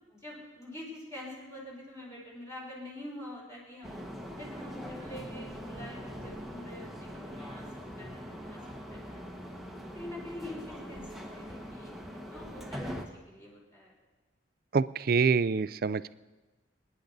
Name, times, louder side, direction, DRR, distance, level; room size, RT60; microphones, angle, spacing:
voice 1, 0.1-4.0 4.4-7.7 8.0-8.6 8.9-9.2 9.9-11.0 11.3-13.0 13.3-13.9, left 1 dB, 15° left, -4 dB, 4.0 m, -45 dB
sound 1, 3.8-13.0, equal, ahead, 1.2 m, -42 dB
voice 2, 14.7-16.1, right 5 dB, 50° right, 17 dB, 0.4 m, -26 dB
25.5 x 10.0 x 4.0 m, 1.2 s
head